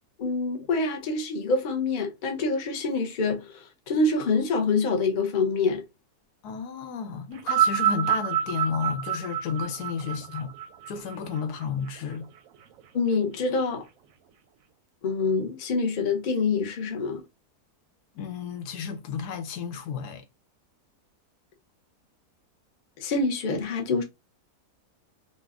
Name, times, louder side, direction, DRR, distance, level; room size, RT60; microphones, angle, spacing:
voice 1, 0.2-5.8 12.9-13.8 15.0-17.2 23.0-24.0, left 3 dB, 40° left, 0.7 m, -26 dB
voice 2, 6.4-10.5 10.9-12.3 18.1-20.2, left 6 dB, 80° left, 1.2 m, -32 dB
sound 1, 7.4-11.9 12.8-12.9, right 9 dB, 70° right, 0.9 m, -27 dB
4.0 x 2.2 x 2.4 m
omnidirectional pair, 1.7 m